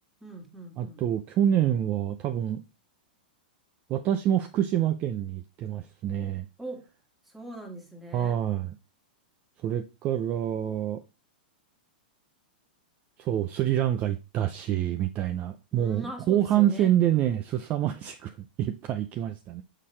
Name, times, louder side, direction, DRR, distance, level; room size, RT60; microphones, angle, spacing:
voice 1, 0.2-1.0 6.6-6.9 7.3-8.4 15.7-16.9, right 2 dB, 5° right, 0 dB, 1.8 m, -41 dB
voice 2, 0.8-2.6 3.9-6.5 8.1-8.7 9.6-11.0 13.2-18.3 18.6-19.6, right 11 dB, 30° right, 7 dB, 0.5 m, -26 dB
6.5 x 5.6 x 3.2 m, 0.29 s
hypercardioid pair, 145°, 5 cm